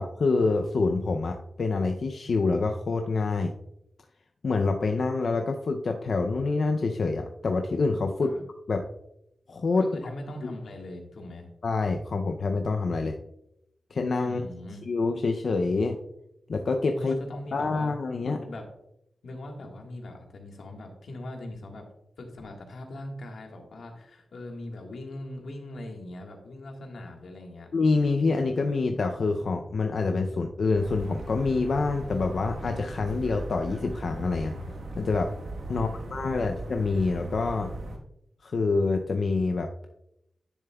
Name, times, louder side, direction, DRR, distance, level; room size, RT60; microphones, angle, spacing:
voice 1, 0.0-3.5 4.4-8.4 8.7-8.9 9.5-9.9 10.4-10.5 11.6-13.2 13.9-14.4 14.9-16.0 16.5-17.1 17.5-18.4 27.7-34.5 34.9-35.3 35.7-37.7 38.4-39.9, left 3 dB, 55° left, 4 dB, 0.4 m, -26 dB
voice 2, 9.8-11.5 14.2-14.8 16.9-17.9 18.2-18.6 19.2-21.8 22.2-27.7 35.7-36.5, left 1 dB, 90° left, 2 dB, 1.4 m, -40 dB
sound 1, 30.8-38.0, right 2 dB, 85° right, 1.2 m, -38 dB
10.0 x 7.0 x 2.2 m, 0.82 s
wide cardioid pair, 175°, 0 cm